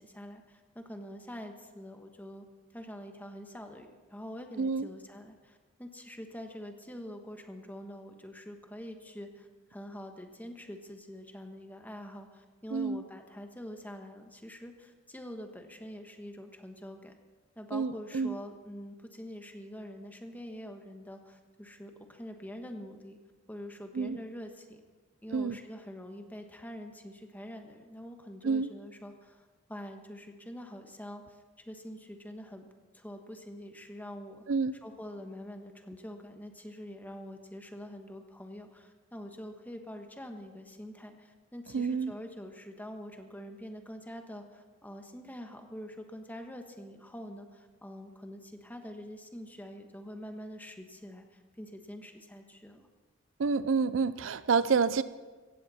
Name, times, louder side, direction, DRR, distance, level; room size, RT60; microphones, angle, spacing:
voice 1, 0.0-2.5 2.7-17.2 17.6-23.2 23.5-24.8 25.2-31.4 31.7-32.7 32.9-34.4 34.8-52.9, equal, 10° left, 5 dB, 1.3 m, -45 dB
voice 2, 4.6-4.9 12.7-13.0 17.7-18.4 23.9-24.2 25.3-25.6 28.4-28.7 34.5-34.7 41.7-42.1 53.4-55.0, right 5 dB, 70° right, 15 dB, 0.5 m, -28 dB
16.5 x 15.0 x 4.2 m, 1.3 s
head